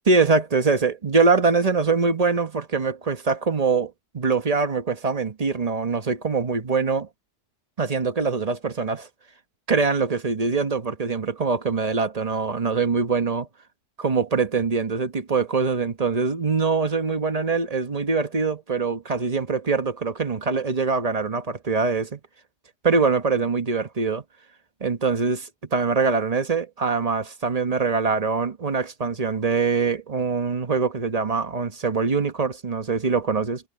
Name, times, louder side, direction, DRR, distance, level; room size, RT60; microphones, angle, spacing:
voice 1, 0.1-7.1 7.8-9.1 9.7-13.5 14.0-22.2 22.8-24.2 24.8-33.7, right 4 dB, 30° right, 0.8 m, -23 dB
omnidirectional pair, 1.8 m